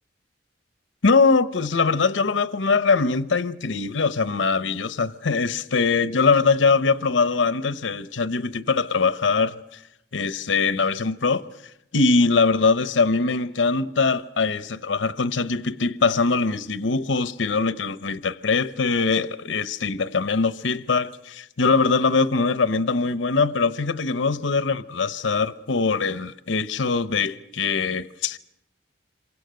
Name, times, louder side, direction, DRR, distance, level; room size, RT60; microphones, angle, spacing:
voice 1, 1.0-9.6 10.1-11.4 11.9-28.4, left 4 dB, 85° left, 0.8 m, -22 dB
27.0 x 24.0 x 6.5 m
head